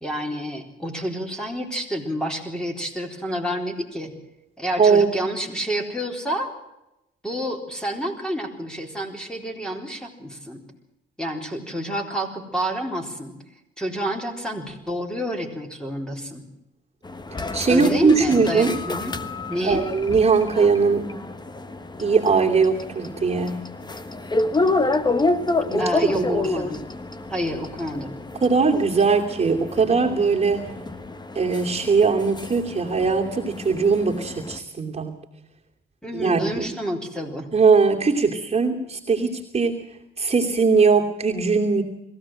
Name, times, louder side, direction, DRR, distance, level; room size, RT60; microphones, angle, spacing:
voice 1, 0.0-4.1 4.6-6.5 7.2-10.6 11.2-13.4 13.8-16.4 17.7-19.2 19.5-19.8 25.8-26.8 27.3-28.1 36.0-37.5, equal, 5° left, 2 dB, 4.1 m, -29 dB
voice 2, 4.8-5.2 17.5-18.8 19.6-21.1 22.0-23.6 25.7-26.6 28.4-30.7 31.3-35.1 36.1-36.7 37.5-39.8 40.2-41.8, right 4 dB, 30° right, 1 dB, 2.8 m, -20 dB
sound 1, 17.0-34.6, left 2 dB, 20° left, 1.4 m, -29 dB
21.5 x 16.0 x 7.6 m, 0.89 s
cardioid pair, 90°, 20 cm